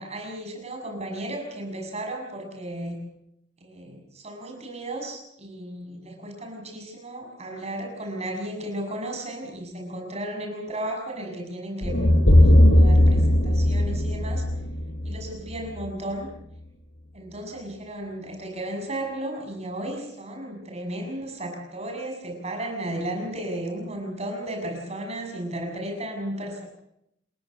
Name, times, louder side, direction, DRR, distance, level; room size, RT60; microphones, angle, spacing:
voice 1, 0.0-3.0 3.6-14.4 15.0-16.3 17.1-26.6, right 1 dB, 35° right, 3 dB, 6.6 m, -34 dB
sound 1, 11.8-16.0, left 1 dB, 70° left, 5.1 m, -18 dB
29.5 x 17.0 x 6.5 m, 0.77 s
head